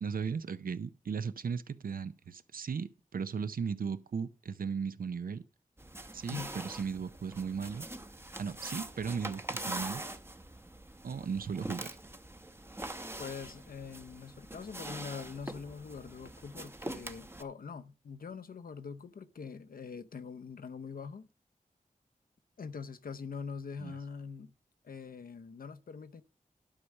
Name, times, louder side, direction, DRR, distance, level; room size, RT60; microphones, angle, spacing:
voice 1, 0.0-5.4 6.1-7.9 8.4-10.0 11.0-11.9 23.8-24.0, right 6 dB, 90° right, 0.6 m, -36 dB
sound 1, 5.8-17.4, right 1 dB, 15° right, 0.7 m, -43 dB
voice 2, 13.2-21.3 22.6-24.5 24.8-26.2, left 5 dB, 85° left, 0.6 m, -43 dB
11.5 x 4.7 x 6.5 m
wide cardioid pair, 70°, 14 cm